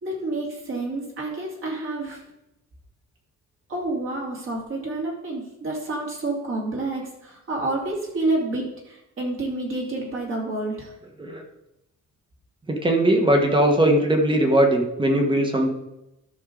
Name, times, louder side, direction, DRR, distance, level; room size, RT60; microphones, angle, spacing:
voice 1, 0.0-2.2 3.7-10.9, right 2 dB, 45° right, -2 dB, 2.8 m, -29 dB
voice 2, 12.7-15.7, right 1 dB, 15° right, 3 dB, 1.4 m, -19 dB
13.0 x 6.5 x 3.9 m, 0.90 s
cardioid pair, 165°, 30 cm